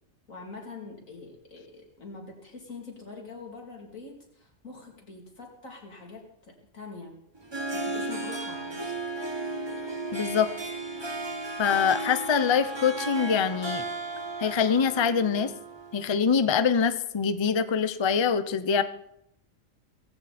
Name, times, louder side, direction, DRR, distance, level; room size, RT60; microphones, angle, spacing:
voice 1, 0.3-7.2 7.7-9.0, left 3 dB, 85° left, 0 dB, 3.6 m, -44 dB
Harp, 7.4-16.1, right 2 dB, 20° right, 1.3 m, -35 dB
voice 2, 10.1-10.5 11.6-13.8 14.4-15.5 15.9-18.8, left 6 dB, 30° left, 12 dB, 0.6 m, -24 dB
17.5 x 15.5 x 4.3 m, 0.77 s
omnidirectional pair, 1.4 m